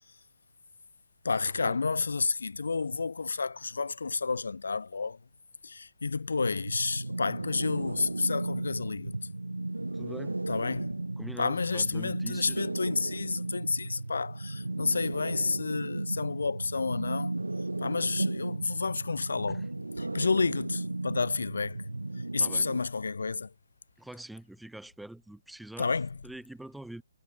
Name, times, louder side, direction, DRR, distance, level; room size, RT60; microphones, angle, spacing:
voice 1, 1.2-5.2 5.6-9.2 10.5-11.0 11.4-17.3 17.8-19.6 20.0-21.9 22.3-23.5 25.8-26.2, left 4 dB, 65° left, 0.9 m, -30 dB
sound 1, 6.4-22.8, right 2 dB, 80° right, 1.8 m, -35 dB
voice 2, 9.9-10.4 11.2-12.6 19.5-19.7 22.4-22.7 24.0-25.9 26.2-27.0, right 1 dB, ahead, 2.5 m, -44 dB
figure-of-eight pair, 135°, 0 cm